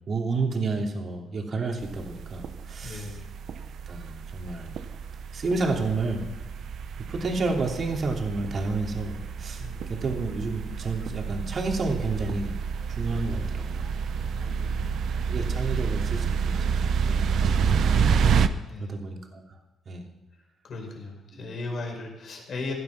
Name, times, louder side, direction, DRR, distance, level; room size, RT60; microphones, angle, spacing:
voice 1, 0.1-3.1 3.9-4.7 5.3-6.2 7.1-9.6 9.9-12.5 12.9-13.8 15.3-17.9 18.2-18.5 18.8-19.4 19.9-20.1 21.3-21.5, right 3 dB, 45° right, 1 dB, 2.9 m, -30 dB
sound 1, 1.8-18.5, right 6 dB, 65° right, 0.8 m, -28 dB
voice 2, 2.8-3.3 9.6-9.9 14.3-15.1 15.6-15.8 18.7-18.9 20.6-22.7, left 3 dB, 60° left, 1 dB, 4.8 m, -37 dB
17.0 x 11.5 x 5.9 m, 1.1 s
cardioid pair, 90°, 0 cm